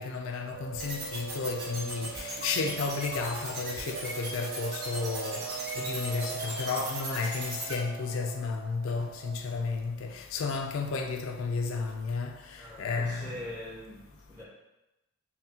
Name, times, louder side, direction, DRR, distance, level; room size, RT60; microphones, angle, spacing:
voice 1, 0.0-5.4 5.8-12.3 12.8-13.3, left 4 dB, 65° left, 0.4 m, -32 dB
sound 1, 0.5-9.8, right 6 dB, 70° right, 0.3 m, -42 dB
sound 2, 0.8-7.7, right 2 dB, 45° right, 1.3 m, -38 dB
voice 2, 12.6-14.4, left 1 dB, 10° right, 0.5 m, -43 dB
5.7 x 2.2 x 2.7 m
head